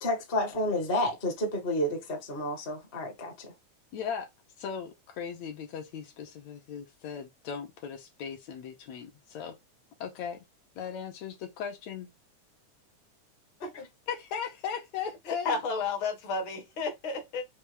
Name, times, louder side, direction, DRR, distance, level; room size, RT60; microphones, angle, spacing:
voice 1, 0.0-3.5 13.6-13.9, left 1 dB, 40° left, 0.8 m, -30 dB
voice 2, 3.9-4.3 4.6-9.5 10.0-10.5 10.8-12.1 14.1-15.5, left 7 dB, 70° left, 2.0 m, -38 dB
voice 3, 15.3-17.4, left 4 dB, 55° left, 1.5 m, -32 dB
5.5 x 2.4 x 3.3 m
omnidirectional pair, 3.4 m